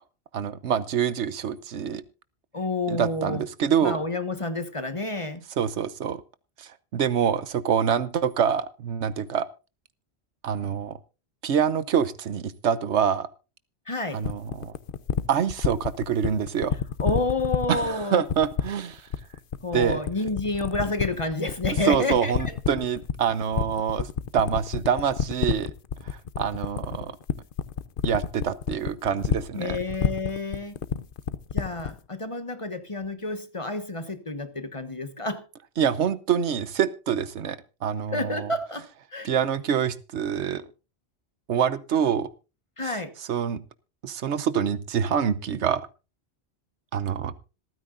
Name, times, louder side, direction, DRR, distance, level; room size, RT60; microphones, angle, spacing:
voice 1, 0.3-2.0 2.9-4.0 5.6-6.2 6.6-9.5 10.4-11.0 11.4-13.3 14.1-14.7 15.3-16.8 17.7-19.0 19.7-20.0 21.8-25.7 26.0-27.1 28.0-29.8 35.8-38.5 39.2-40.6 41.5-42.3 42.8-43.0 43.3-43.6 44.0-45.9 46.9-47.3, right 8 dB, 85° right, 1.2 m, -26 dB
voice 2, 2.5-3.4 3.8-5.4 13.9-14.2 17.0-18.2 19.6-22.6 29.5-30.7 31.5-35.4 38.1-39.3 42.8-43.1, left 2 dB, 30° left, 1.3 m, -29 dB
sound 1, 14.2-32.0, left 8 dB, 55° left, 0.9 m, -28 dB
26.0 x 9.4 x 2.5 m
omnidirectional pair, 1.1 m